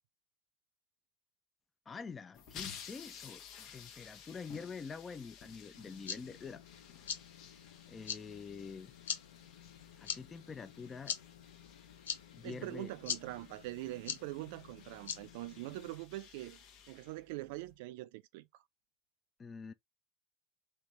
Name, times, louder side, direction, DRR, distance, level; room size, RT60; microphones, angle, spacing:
voice 1, 1.9-6.6 7.9-8.9 10.0-11.2 12.3-12.9 19.4-19.7, left 5 dB, 25° left, 0.5 m, -46 dB
sound 1, 2.3-17.7, left 7 dB, 55° left, 0.9 m, -55 dB
sound 2, 5.7-16.0, left 8 dB, 85° left, 0.5 m, -45 dB
voice 2, 12.4-16.6 16.9-18.5, right 18 dB, 65° right, 0.4 m, -43 dB
3.4 x 2.9 x 3.1 m
hypercardioid pair, 85°, 0 cm